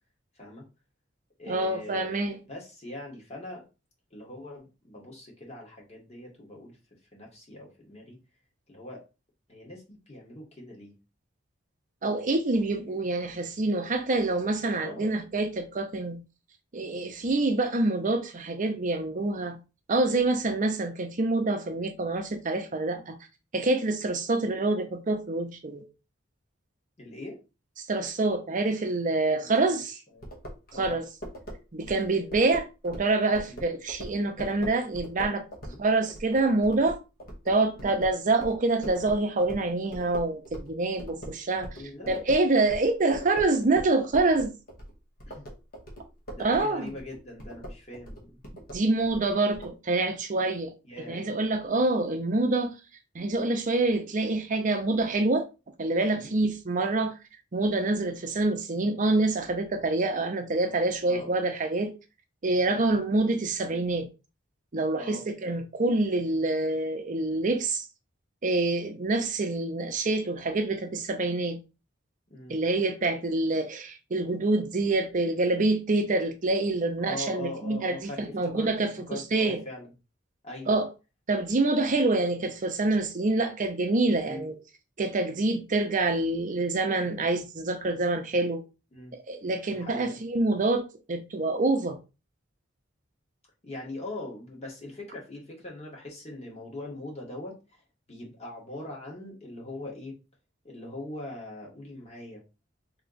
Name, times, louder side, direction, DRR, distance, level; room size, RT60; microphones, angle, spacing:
voice 1, 0.3-0.6 1.4-2.2 2.5-3.6 4.1-6.8 7.1-8.2 8.7-9.0 9.5-10.9 14.8-15.1 20.3-20.4 24.4-24.5 27.0-27.4 29.4-30.3 30.7-31.0 33.5-33.7 35.6-35.8 37.7-38.0 41.7-42.2 45.2-45.4 46.3-48.4 50.8-51.3 56.1-56.4 61.0-61.3 62.6-62.9 64.9-65.2 72.3-72.5 77.0-78.7 79.1-79.9 80.4-80.7 84.2-84.4 88.9-89.1 89.7-90.2 93.6-97.8 98.1-100.2 100.6-102.4, left 1 dB, 35° left, 1.7 m, -41 dB
voice 2, 1.5-2.4 12.0-16.2 16.7-19.6 19.9-23.2 23.5-25.9 27.9-29.9 30.8-31.1 31.7-35.4 35.8-37.0 37.5-41.8 42.1-44.5 46.4-46.9 48.7-50.7 51.1-52.7 53.1-55.5 55.8-57.1 57.5-61.9 62.4-64.1 64.7-67.9 68.4-71.6 72.5-79.6 80.7-80.9 81.3-84.6 85.0-88.6 89.3-92.0, right 2 dB, 40° right, 0.6 m, -26 dB
sound 1, 30.2-40.7 41.0-49.7, equal, 50° left, 1.3 m, -42 dB
3.3 x 3.0 x 3.9 m
head